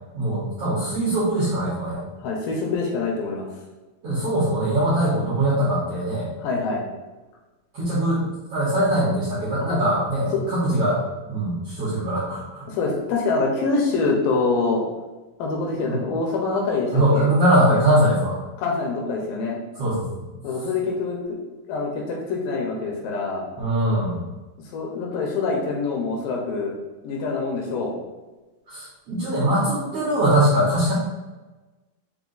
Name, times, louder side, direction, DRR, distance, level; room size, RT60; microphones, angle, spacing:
voice 1, 0.1-2.0 4.0-6.3 7.7-11.0 11.3-12.6 15.8-16.0 16.9-18.4 19.7-20.2 23.6-24.2 28.7-30.9, right 1 dB, 75° right, -8 dB, 1.4 m, -22 dB
voice 2, 2.2-3.5 6.4-6.8 9.6-9.8 10.3-10.4 12.7-14.8 15.4-17.3 18.6-19.6 20.4-21.4 21.7-23.5 24.7-26.7 27.0-27.9, left 3 dB, 80° left, 0 dB, 2.2 m, -25 dB
5.7 x 2.2 x 3.8 m, 1.2 s
omnidirectional pair, 4.3 m